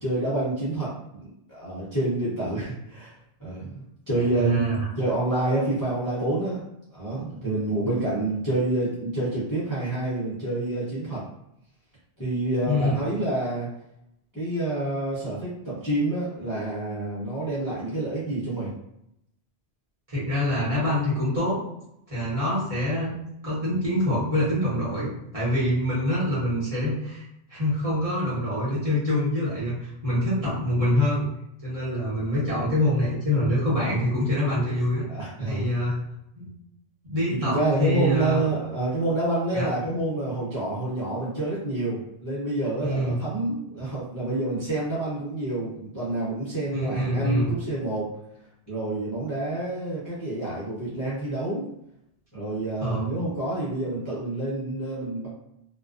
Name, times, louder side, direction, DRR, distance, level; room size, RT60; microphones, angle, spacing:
voice 1, 0.0-3.1 3.4-6.6 6.9-11.2 12.2-13.7 14.3-18.7 35.1-35.7 37.3-48.2 48.7-51.7 52.3-55.3, right 2 dB, 20° left, -10 dB, 0.5 m, -28 dB
voice 2, 4.2-4.8 12.6-13.0 20.1-21.6 22.1-23.2 23.4-27.2 27.5-31.2 31.6-35.1 35.5-36.0 36.4-36.5 37.1-38.4 39.5-39.9 42.8-43.2 46.7-47.5 52.8-53.1, left 1 dB, 30° right, -9 dB, 1.0 m, -25 dB
2.3 x 2.2 x 2.4 m, 0.79 s
omnidirectional pair, 1.3 m